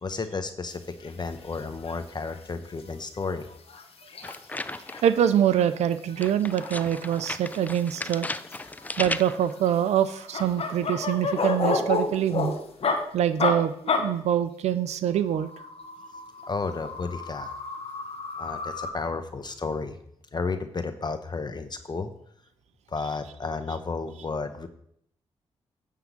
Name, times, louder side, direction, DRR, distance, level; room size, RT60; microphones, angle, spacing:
voice 1, 0.0-3.5 16.5-17.5 18.4-20.0 20.3-22.1 22.9-24.7, left 4 dB, 40° left, 9 dB, 0.9 m, -32 dB
sound 1, 1.0-1.2 1.5-1.6 1.8-2.0 2.3-2.4 2.8-2.9 3.2-5.2 5.5-5.7 5.9-7.7 8.0-8.8 9.3-13.0 13.4-13.5 13.9-14.0 15.1-18.9, left 4 dB, 60° left, 1.4 m, -31 dB
sound 2, 4.2-5.2 6.2-9.5, left 2 dB, 15° left, 0.5 m, -35 dB
voice 2, 5.0-8.3 9.0-12.5 13.1-15.5, right 10 dB, 80° right, 12 dB, 0.5 m, -24 dB
9.8 x 3.7 x 7.2 m, 0.67 s
supercardioid pair, 55°, 11 cm